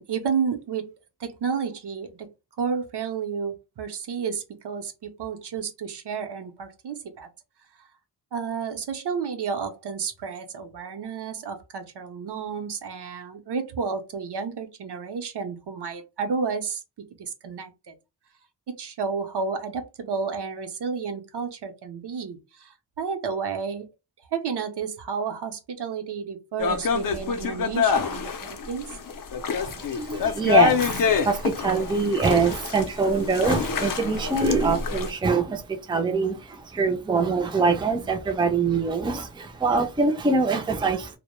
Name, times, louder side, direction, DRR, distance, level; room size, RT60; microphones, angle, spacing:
voice 1, 0.0-2.3 2.6-7.3 8.3-16.8 17.2-18.0 18.7-23.9 24.3-28.9, right 6 dB, 75° right, 0.6 m, -31 dB
sound 1, 26.6-35.1, left 6 dB, 55° left, 0.5 m, -26 dB
voice 2, 29.6-41.2, right 4 dB, 15° right, 0.3 m, -24 dB
2.1 x 2.0 x 2.9 m
wide cardioid pair, 135°, 41 cm